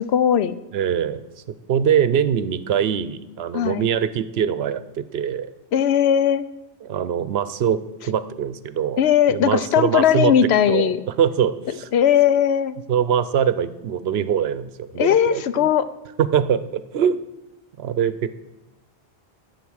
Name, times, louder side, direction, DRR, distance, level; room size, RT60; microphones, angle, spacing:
voice 1, 0.0-0.6 3.5-3.9 5.7-6.4 9.0-11.0 11.9-12.8 15.0-15.9, left 9 dB, 85° left, 15 dB, 0.9 m, -18 dB
voice 2, 0.7-5.5 6.8-9.0 9.3-10.3 10.7-10.9 11.2-11.9 12.9-15.6 16.2-17.2 17.8-18.3, right 8 dB, 75° right, 14 dB, 0.9 m, -23 dB
12.0 x 8.1 x 6.3 m, 1.0 s
omnidirectional pair, 1.1 m